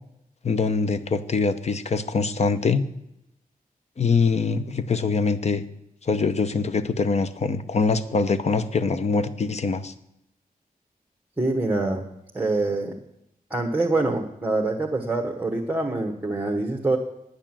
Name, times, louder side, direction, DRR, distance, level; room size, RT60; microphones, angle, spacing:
voice 1, 0.4-2.8 4.0-5.6 6.0-9.9, left 4 dB, 45° left, 12 dB, 0.8 m, -23 dB
voice 2, 11.4-12.0 12.3-12.9 13.5-17.0, right 2 dB, 10° right, 0 dB, 1.3 m, -25 dB
9.7 x 8.9 x 7.5 m, 0.82 s
wide cardioid pair, 145°, 15 cm